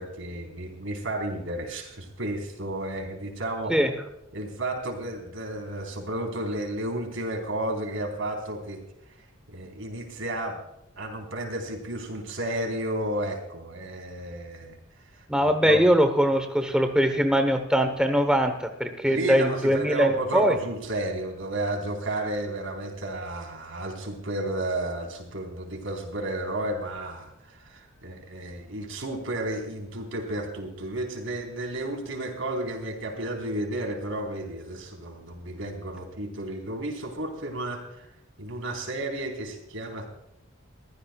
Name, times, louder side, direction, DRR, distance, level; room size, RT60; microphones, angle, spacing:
voice 1, 0.0-3.7 4.3-8.8 9.5-10.6 11.0-14.8 15.1-15.8 19.0-38.1 38.4-40.1, right 1 dB, 65° right, 3 dB, 4.1 m, -32 dB
voice 2, 15.3-20.5, equal, 5° right, 6 dB, 1.0 m, -22 dB
22.5 x 15.5 x 2.4 m, 0.83 s
head